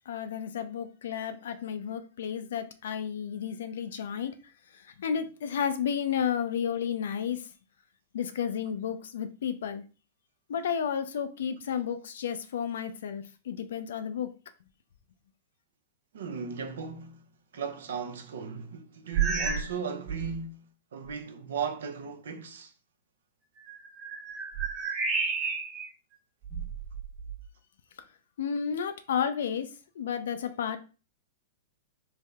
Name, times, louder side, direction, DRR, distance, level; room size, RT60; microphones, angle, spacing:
voice 1, 0.1-4.3 4.7-7.5 8.1-9.8 10.5-14.3 28.0-28.1 28.4-29.7 30.0-30.8, left 8 dB, 70° left, 0.5 m, -32 dB
voice 2, 16.1-17.3 17.5-22.7, right 6 dB, 75° right, 0.6 m, -37 dB
sound 1, 19.1-19.8 20.1-20.4 21.1-21.2 23.6-25.9 26.4-27.5, right 6 dB, 30° right, 1.0 m, -31 dB
3.4 x 2.1 x 3.5 m
hypercardioid pair, 110°, 0 cm